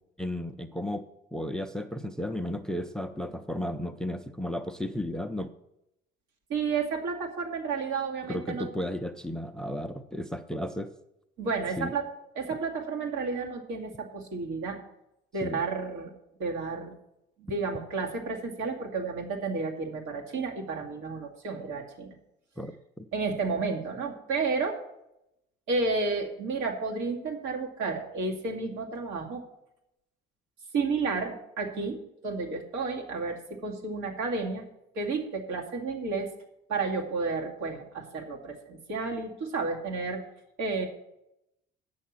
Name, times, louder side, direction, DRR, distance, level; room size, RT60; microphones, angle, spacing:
voice 1, 0.2-1.0 1.3-5.5 8.2-10.9 11.8-11.9 12.5-12.6 15.4-15.6 22.6-22.7 23.0-23.1, left 1 dB, 5° left, 10 dB, 0.3 m, -34 dB
voice 2, 6.5-8.7 11.4-14.8 15.3-16.1 16.4-16.9 17.4-22.2 23.1-24.8 25.7-29.4 30.7-34.6 34.9-36.3 36.7-40.2 40.6-40.9, right 4 dB, 85° right, 1 dB, 2.3 m, -31 dB
9.3 x 6.4 x 7.3 m, 0.85 s
cardioid pair, 165°, 20 cm